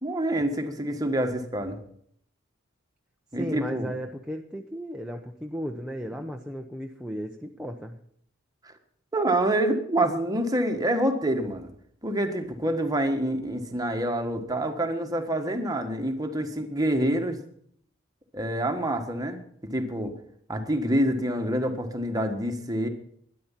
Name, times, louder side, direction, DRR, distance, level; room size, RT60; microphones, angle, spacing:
voice 1, 0.0-1.8 3.3-3.9 8.6-8.7 9.1-11.7 12.0-17.4 18.3-20.1 20.5-22.9, right 1 dB, 20° right, 5 dB, 1.6 m, -27 dB
voice 2, 3.4-8.0, equal, 5° right, 2 dB, 0.8 m, -35 dB
12.5 x 10.5 x 7.4 m, 0.66 s
head